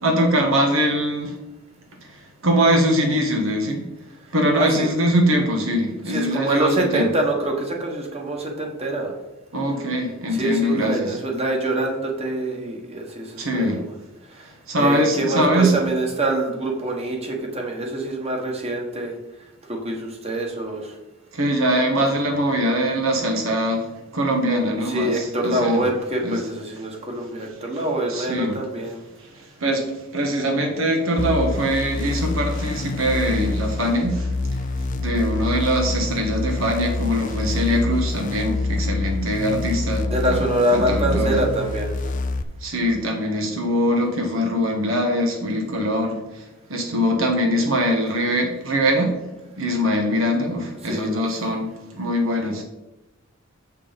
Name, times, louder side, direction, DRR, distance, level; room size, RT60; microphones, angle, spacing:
voice 1, 0.0-1.3 2.0-2.2 2.4-3.8 4.3-7.1 9.5-11.2 13.4-13.8 14.7-15.8 21.3-23.9 24.1-25.9 26.2-26.4 27.7-27.8 28.1-28.6 29.2-29.3 29.6-34.6 35.0-41.4 42.6-46.4 46.7-49.1 49.6-51.7 51.9-52.6, equal, 75° right, 2 dB, 1.5 m, -22 dB
voice 2, 4.5-4.9 6.1-9.1 10.3-13.8 14.8-19.1 19.7-21.0 24.8-29.0 40.1-42.1 50.8-51.2, right 1 dB, 30° right, 1 dB, 1.6 m, -25 dB
sound 1, 31.2-42.4, left 3 dB, 40° left, 0.5 m, -26 dB
7.2 x 6.6 x 5.3 m, 0.99 s
head